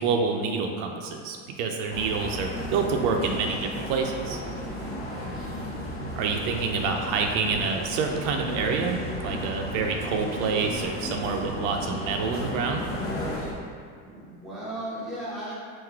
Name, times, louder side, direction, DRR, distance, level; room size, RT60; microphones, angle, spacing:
voice 1, 0.0-4.4 6.2-12.8, right 5 dB, 80° right, 2 dB, 0.6 m, -27 dB
sound 1, 1.9-13.5, left 1 dB, 35° left, 1.1 m, -34 dB
voice 2, 5.0-5.8 14.0-15.6, right 1 dB, ahead, -11 dB, 1.2 m, -37 dB
3.8 x 2.5 x 4.5 m, 2.3 s
supercardioid pair, 135°, 36 cm